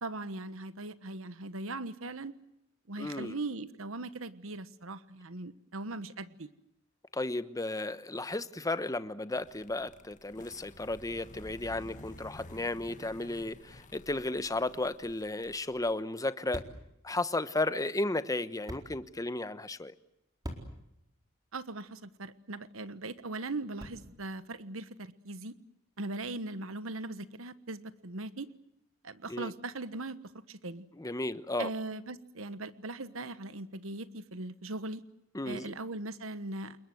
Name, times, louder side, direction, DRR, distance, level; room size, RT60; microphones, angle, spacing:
voice 1, 0.0-2.3 2.9-6.5 21.5-25.5 26.0-28.5 29.0-30.9 31.6-35.0 35.4-36.8, right 2 dB, 75° right, 1.3 m, -39 dB
voice 2, 3.0-3.4 7.1-16.6 17.0-19.9 29.3-29.5 31.0-31.7 35.3-35.7, left 2 dB, 15° left, 1.0 m, -34 dB
sound 1, 9.4-15.9, left 1 dB, 40° left, 1.8 m, -52 dB
sound 2, 15.3-24.3, equal, 20° right, 4.3 m, -50 dB
28.5 x 22.0 x 7.9 m
head